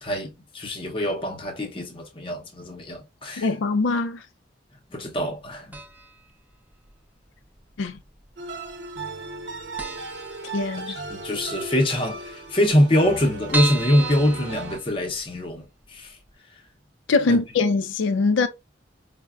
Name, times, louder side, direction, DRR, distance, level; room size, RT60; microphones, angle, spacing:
voice 1, 0.0-3.5 4.9-5.8 10.8-16.2 16.5-16.6 17.3-17.4, left 1 dB, 30° left, 0.6 m, -24 dB
voice 2, 3.4-4.2 7.8-8.0 10.5-11.0 17.1-18.5, left 3 dB, 85° left, 0.4 m, -22 dB
sound 1, 5.7-6.3 6.5-6.6 7.5-8.2 8.5-8.7 9.0-9.1 9.4-9.5 9.8-11.1 11.5-11.6 11.8-11.9 12.1-12.2 12.7-15.4 15.8-15.9 16.3-16.4, right 3 dB, 10° right, 0.3 m, -33 dB
sound 2, 8.4-14.8, right 3 dB, 70° right, 0.8 m, -36 dB
4.4 x 2.1 x 2.3 m
head